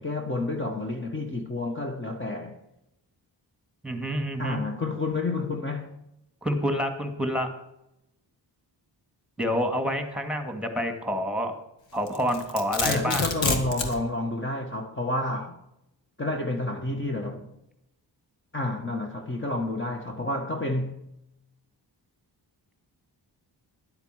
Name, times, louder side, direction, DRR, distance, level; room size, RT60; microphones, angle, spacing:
voice 1, 0.0-2.6 4.4-5.9 12.8-15.6 16.2-17.5 18.5-21.1, left 2 dB, 25° left, 1.6 m, -30 dB
voice 2, 3.8-4.6 6.4-7.5 9.4-11.5 11.9-13.2, equal, ahead, 2.2 m, -28 dB
Domestic sounds home sounds, 12.1-14.0, left 4 dB, 80° left, 1.9 m, -27 dB
11.5 x 8.1 x 6.6 m
cardioid pair, 80°, 44 cm